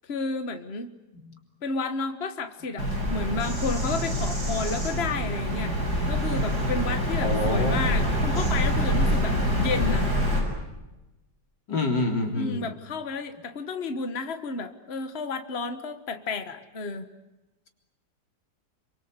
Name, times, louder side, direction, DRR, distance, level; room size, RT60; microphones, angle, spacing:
voice 1, 0.1-1.0 1.6-5.8 6.1-10.1 12.3-17.1, left 4 dB, 35° left, 8 dB, 1.7 m, -32 dB
Bird vocalization bird call bird song, 2.8-10.4, equal, 65° right, 7.2 m, -26 dB
voice 2, 7.2-8.0 9.8-9.9 11.7-12.7, left 2 dB, 80° left, 3 dB, 4.3 m, -27 dB
28.0 x 25.0 x 8.1 m, 1.0 s
omnidirectional pair, 1.9 m